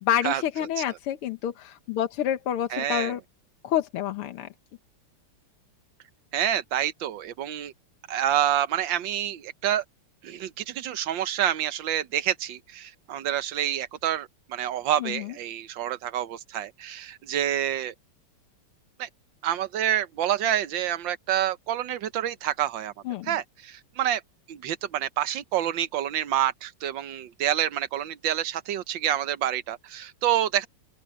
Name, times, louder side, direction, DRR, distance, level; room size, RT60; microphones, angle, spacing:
voice 1, 0.0-3.2 3.6-4.5 15.0-15.3 23.1-23.3, left 11 dB, 80° left, 2.0 m, -28 dB
voice 2, 2.7-3.1 6.3-7.7 8.1-9.8 10.2-17.9 19.0-19.1 19.4-22.9 23.2-24.2 24.5-30.7, right 11 dB, 65° right, 1.5 m, -28 dB
open air
omnidirectional pair, 2.4 m